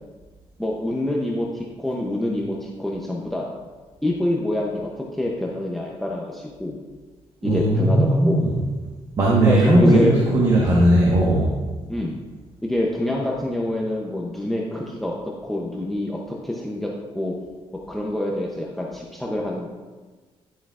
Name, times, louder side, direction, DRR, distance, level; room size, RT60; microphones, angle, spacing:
voice 1, 0.6-3.5 4.0-6.8 7.4-8.4 9.5-10.2 11.9-12.2 12.6-15.1 15.4-17.4 17.9-19.7, left 1 dB, ahead, -2 dB, 0.6 m, -26 dB
voice 2, 7.4-8.5 9.2-11.5, right 1 dB, 35° right, -4 dB, 1.1 m, -17 dB
10.0 x 7.6 x 2.4 m, 1.3 s
cardioid pair, 180°, 11 cm